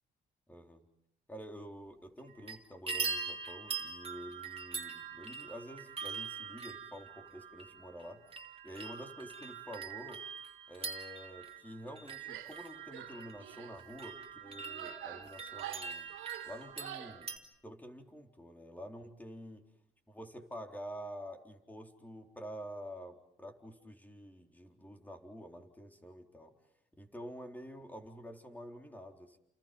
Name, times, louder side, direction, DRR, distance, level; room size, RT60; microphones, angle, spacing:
voice 1, 0.5-0.8 1.3-10.2 10.7-16.1 16.4-17.3 17.6-19.6 20.1-26.6 27.0-29.4, equal, 10° left, 3 dB, 3.9 m, -48 dB
sound 1, 2.2-2.6 2.9-17.4, right 5 dB, 30° right, 3.0 m, -43 dB
Female speech woman speaking / Yell, 12.2-12.6 12.9-13.8 14.4-17.2, right 10 dB, 80° right, 2.8 m, -47 dB
30.0 x 29.0 x 5.4 m, 0.73 s
cardioid pair, 90°, 20 cm